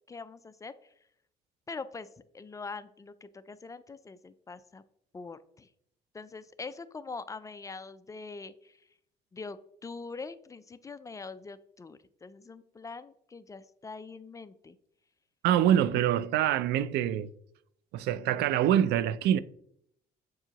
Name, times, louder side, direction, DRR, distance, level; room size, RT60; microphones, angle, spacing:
voice 1, 0.1-0.7 1.7-2.1 2.3-4.8 5.1-5.7 6.1-8.8 9.3-14.8, left 4 dB, 20° left, 0.3 m, -43 dB
voice 2, 15.4-17.3 17.9-19.4, right 11 dB, 75° right, 0.4 m, -25 dB
7.7 x 4.6 x 2.9 m
cardioid pair, 110°, 17 cm